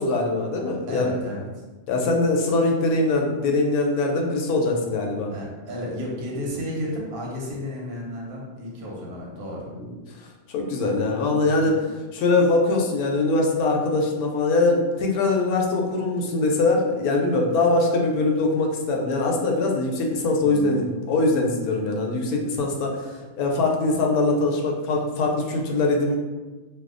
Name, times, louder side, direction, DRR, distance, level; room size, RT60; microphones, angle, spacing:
voice 1, 0.0-1.1 1.9-5.3 10.5-11.8 12.1-26.2, left 3 dB, 80° left, 1 dB, 1.0 m, -22 dB
voice 2, 0.9-1.5 5.3-9.7 11.6-11.9 20.4-21.0, left 1 dB, 85° right, -3 dB, 1.2 m, -33 dB
2.7 x 2.2 x 3.7 m, 1.2 s
omnidirectional pair, 1.6 m